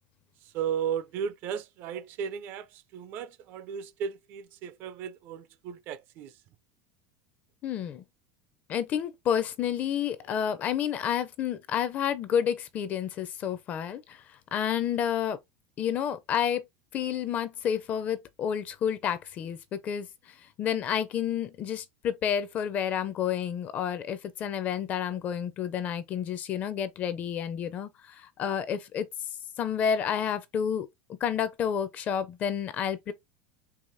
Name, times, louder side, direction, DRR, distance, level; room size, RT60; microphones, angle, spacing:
voice 1, 0.4-6.3, right 8 dB, 35° right, 0.4 m, -35 dB
voice 2, 7.6-8.0 8.7-15.4 15.8-16.6 16.9-29.1 29.6-30.9 31.2-33.1, left 8 dB, 25° left, 0.4 m, -30 dB
4.7 x 3.1 x 2.6 m
supercardioid pair, 175°, 6 cm